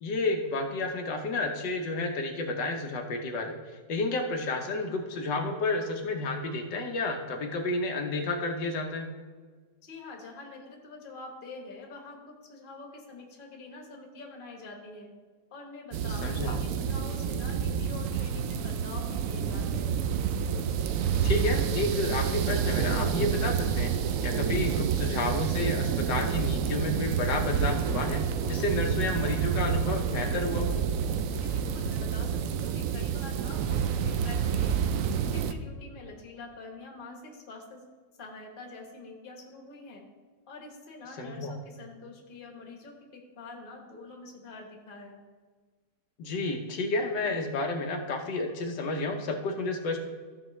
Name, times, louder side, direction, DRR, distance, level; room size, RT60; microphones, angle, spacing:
voice 1, 0.0-9.1 16.2-16.6 21.2-23.9 24.2-28.2 28.5-30.7 41.2-41.5 46.2-50.0, left 2 dB, 75° left, 3 dB, 1.5 m, -31 dB
voice 2, 9.8-15.1 15.5-20.0 31.3-34.7 35.3-37.8 38.2-40.0 40.5-45.2, left 3 dB, 30° left, 1 dB, 1.3 m, -46 dB
sound 1, 15.9-35.5, right 7 dB, 80° right, 0.7 m, -28 dB
14.0 x 6.3 x 3.1 m, 1.4 s
omnidirectional pair, 1.9 m